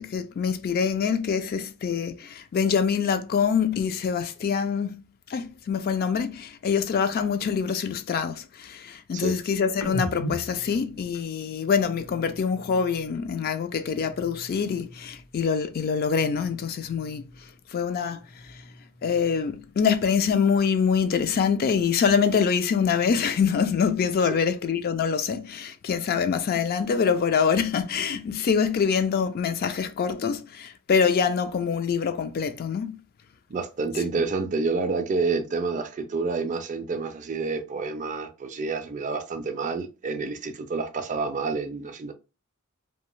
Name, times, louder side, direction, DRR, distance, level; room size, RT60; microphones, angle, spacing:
voice 1, 0.0-5.0 5.3-17.2 17.7-18.2 18.5-18.6 19.0-33.0, left 6 dB, 40° left, 0.3 m, -25 dB
sound 1, 9.8-13.3 13.6-15.5 15.8-17.6 18.0-19.8, right 1 dB, 75° left, 0.8 m, -41 dB
voice 2, 33.5-42.1, right 4 dB, 35° right, 0.4 m, -29 dB
2.7 x 2.2 x 3.0 m
head